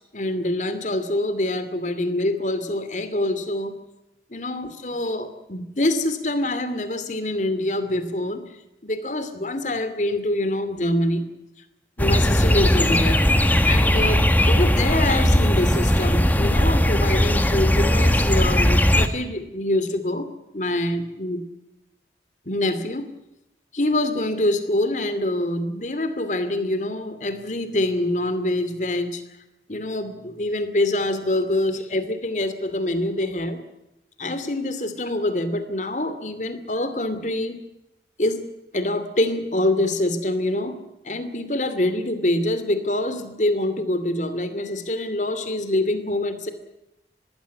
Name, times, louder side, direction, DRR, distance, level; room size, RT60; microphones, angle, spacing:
voice 1, 0.1-3.7 4.3-8.4 8.8-11.2 12.0-13.3 13.7-20.3 20.5-21.4 22.5-23.1 23.7-29.2 29.7-33.6 34.2-37.6 38.2-38.4 38.7-40.7 41.0-46.5, left 1 dB, 45° left, 11 dB, 2.5 m, -25 dB
sound 1, 12.0-19.1, equal, 10° left, 1.3 m, -18 dB
21.0 x 16.0 x 9.4 m, 0.89 s
head